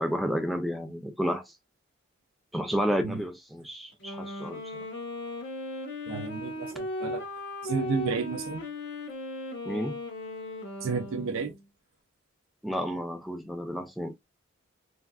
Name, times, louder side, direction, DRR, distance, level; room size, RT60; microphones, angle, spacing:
voice 1, 0.0-1.4 2.5-4.6 9.7-10.0 12.6-14.1, equal, ahead, 0.3 m, -31 dB
Wind instrument woodwind instrument, 3.9-11.6, left 2 dB, 55° left, 0.9 m, -37 dB
voice 2, 6.1-7.3 7.6-8.6 10.8-11.5, right 5 dB, 80° right, 0.5 m, -32 dB
3.4 x 2.4 x 2.3 m
head